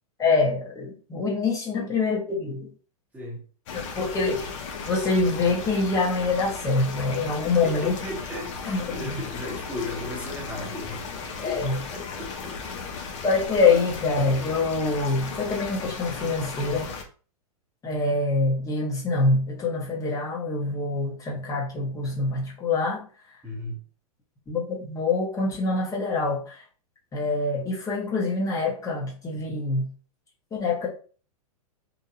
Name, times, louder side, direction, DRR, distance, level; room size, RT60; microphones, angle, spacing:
voice 1, 0.2-2.7 3.7-4.5 4.9-8.0 8.6-9.2 11.4-11.8 13.2-16.9 17.8-23.0 24.5-26.6 27.1-29.9 30.5-30.9, left 3 dB, 20° left, 0.9 m, -25 dB
voice 2, 3.1-3.4 7.4-11.1 11.4-12.8 23.4-23.8, left 1 dB, 10° right, 0.9 m, -36 dB
sound 1, 3.7-17.0, left 5 dB, 55° left, 0.6 m, -36 dB
2.7 x 2.2 x 2.7 m
hypercardioid pair, 110°, 19 cm